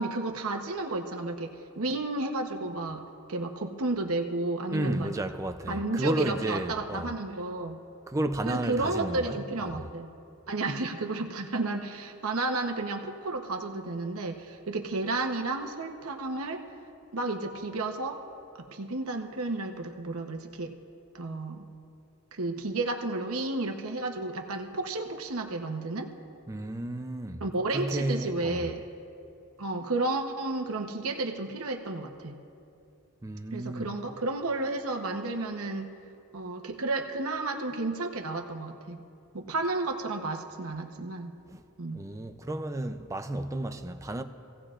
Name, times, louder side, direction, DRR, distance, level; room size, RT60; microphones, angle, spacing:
voice 1, 0.0-5.1 5.7-7.8 8.5-10.1 10.5-16.6 17.1-18.2 18.5-20.7 21.1-21.7 22.3-26.1 27.4-28.9 29.6-32.4 33.5-35.9 36.3-39.0 39.3-41.3 41.8-42.0, right 2 dB, 75° right, 1.0 m, -32 dB
voice 2, 4.7-7.2 8.1-9.9 26.5-27.4 27.7-28.7 33.2-33.9 41.5-41.6 41.9-44.2, right 1 dB, 15° right, 0.5 m, -32 dB
24.5 x 16.5 x 2.5 m
head